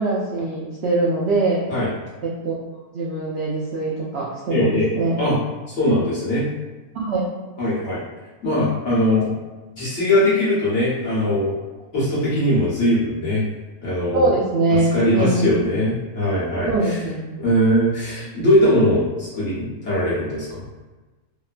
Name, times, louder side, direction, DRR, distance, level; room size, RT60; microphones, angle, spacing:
voice 1, 0.0-1.7 2.2-2.6 2.9-5.2 6.9-7.3 14.1-15.6 16.7-17.3, right 2 dB, 85° right, -5 dB, 0.5 m, -22 dB
voice 2, 4.5-4.9 5.2-5.4 5.7-6.4 7.6-8.0 8.4-9.3 9.8-11.5 11.9-13.4 13.8-14.3 14.7-17.0 17.4-20.6, left 1 dB, 50° left, -8 dB, 1.2 m, -20 dB
3.0 x 2.1 x 2.4 m, 1.2 s
omnidirectional pair, 1.7 m